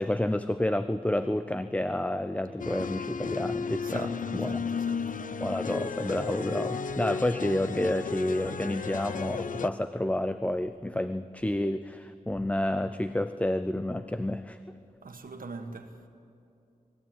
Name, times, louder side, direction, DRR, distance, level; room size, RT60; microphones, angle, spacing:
voice 1, 0.0-4.7 5.4-14.6, left 1 dB, 10° left, 0.5 m, -30 dB
sound 1, 2.6-9.7, left 5 dB, 70° left, 0.6 m, -34 dB
sound 2, 3.5-4.5 5.1-5.2 5.7-9.9, right 1 dB, 10° right, 1.4 m, -52 dB
voice 2, 3.8-5.3 15.0-16.1, right 3 dB, 80° right, 1.7 m, -42 dB
20.5 x 15.0 x 9.2 m
wide cardioid pair, 100°, 14 cm